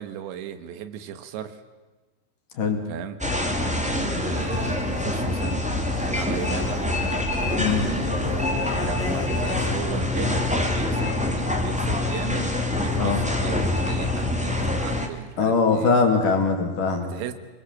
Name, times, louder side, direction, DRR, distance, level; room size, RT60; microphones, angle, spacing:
voice 1, 0.0-1.6 2.9-3.2 3.9-5.7 6.0-6.8 7.7-8.4 8.8-16.0 17.1-17.3, right 9 dB, 75° right, 10 dB, 3.7 m, -36 dB
sound 1, 3.2-15.1, left 2 dB, 5° right, 0.6 m, -25 dB
sound 2, 4.4-9.8, left 12 dB, 80° left, 2.1 m, -36 dB
voice 2, 15.4-17.1, left 4 dB, 50° left, 3 dB, 3.7 m, -21 dB
27.0 x 22.5 x 7.4 m, 1.2 s
omnidirectional pair, 5.4 m